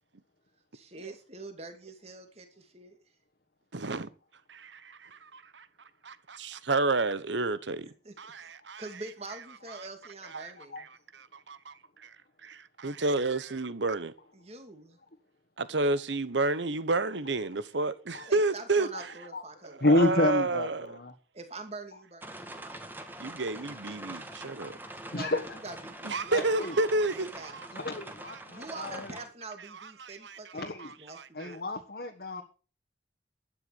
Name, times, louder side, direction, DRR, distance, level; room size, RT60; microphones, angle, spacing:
voice 1, 0.7-3.0 7.8-8.5 8.8-10.8 14.3-15.0 18.3-20.1 21.3-22.8 25.1-27.6 28.5-31.6, right 3 dB, 35° right, 2.4 m, -45 dB
voice 2, 3.7-4.1 4.5-5.7 6.0-7.9 8.2-8.8 9.7-9.8 10.3-10.5 11.5-11.7 12.0-12.1 12.4-14.1 15.6-18.9 19.6-21.0 23.2-24.8 26.0-27.7 28.2-28.4 29.8-31.5, right 3 dB, 80° right, 1.1 m, -30 dB
voice 3, 19.8-21.1 25.1-25.4 26.3-26.7 27.7-29.1 30.5-30.9 31.3-32.4, left 2 dB, 55° left, 1.5 m, -29 dB
sound 1, 22.2-29.3, right 1 dB, 10° right, 1.7 m, -44 dB
12.0 x 9.4 x 7.1 m
head